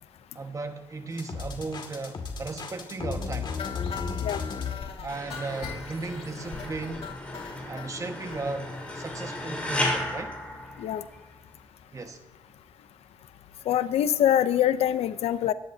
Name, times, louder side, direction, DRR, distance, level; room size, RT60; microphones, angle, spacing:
voice 1, 0.3-3.5 5.0-7.1 7.6-10.4 11.9-12.2, right 3 dB, 30° right, 1.6 m, -36 dB
sound 1, 1.2-4.7, left 5 dB, 50° left, 2.4 m, -33 dB
sound 2, 3.6-7.9 8.3-8.4 8.7-8.8 9.1-9.2 9.5-9.6, left 6 dB, 65° left, 2.4 m, -40 dB
sound 3, 5.1-11.4, left 1 dB, 10° left, 4.6 m, -34 dB
voice 2, 13.7-15.5, left 11 dB, 85° left, 0.7 m, -24 dB
24.0 x 11.0 x 2.8 m
cardioid pair, 100°, 10 cm